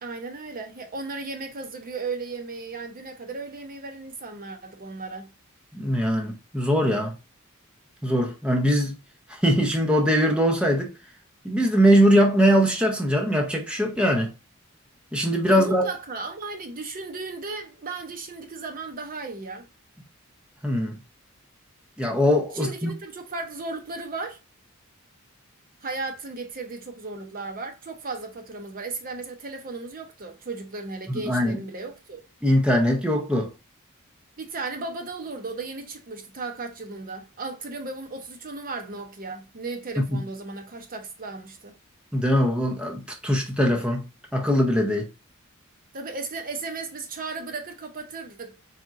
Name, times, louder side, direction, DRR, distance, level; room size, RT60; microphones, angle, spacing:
voice 1, 0.0-5.3 15.5-19.7 22.5-24.4 25.8-32.2 34.4-41.7 45.9-48.6, right 3 dB, 40° right, 0.7 m, -35 dB
voice 2, 5.7-7.1 8.0-8.9 9.3-10.9 11.4-14.3 15.1-15.8 20.6-21.0 22.0-22.9 31.1-31.6 32.4-33.5 40.0-40.2 42.1-44.1 44.3-45.1, equal, 5° right, 0.6 m, -21 dB
4.2 x 3.6 x 2.4 m
head